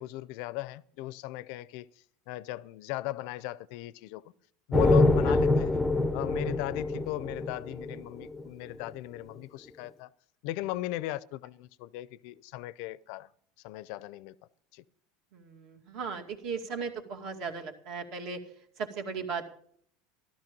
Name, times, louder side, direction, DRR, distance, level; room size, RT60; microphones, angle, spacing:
voice 1, 0.0-1.9 2.3-4.2 4.7-5.8 6.1-10.1 10.4-13.3 13.6-14.3 14.7-14.8, left 16 dB, 60° left, 0.5 m, -37 dB
sound 1, 4.7-8.4, left 2 dB, 5° left, 0.7 m, -25 dB
voice 2, 15.3-19.5, right 5 dB, 50° right, 2.3 m, -37 dB
13.5 x 13.0 x 5.3 m
supercardioid pair, 145°, 0 cm